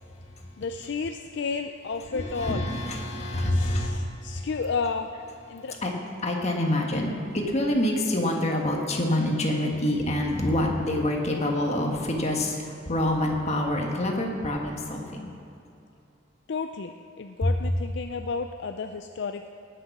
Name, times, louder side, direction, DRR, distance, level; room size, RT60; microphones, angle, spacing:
voice 1, 0.6-2.7 3.5-5.1 5.5-5.8 16.5-19.5, left 5 dB, 60° left, 6 dB, 0.4 m, -32 dB
voice 2, 2.1-4.4 5.8-5.9 6.2-15.3 17.4-17.5, left 1 dB, 35° left, 1 dB, 1.5 m, -26 dB
18.5 x 6.8 x 6.0 m, 2.6 s
head